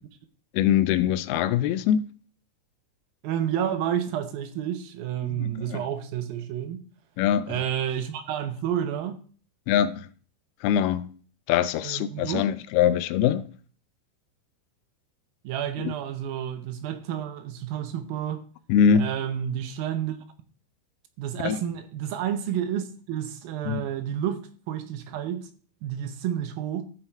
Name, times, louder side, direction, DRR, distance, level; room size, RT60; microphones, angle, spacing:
voice 1, 0.5-2.1 5.3-5.8 7.2-7.6 9.7-10.1 10.6-11.1 11.5-13.5 15.8-15.9 18.7-19.1 21.4-21.6 23.7-23.8, left 9 dB, 80° left, 2.4 m, -23 dB
voice 2, 3.2-6.8 7.5-9.2 11.8-12.5 15.4-18.5 19.0-20.2 21.2-25.5 25.8-26.8, right 10 dB, 75° right, 2.4 m, -30 dB
14.5 x 5.4 x 4.5 m
omnidirectional pair, 4.6 m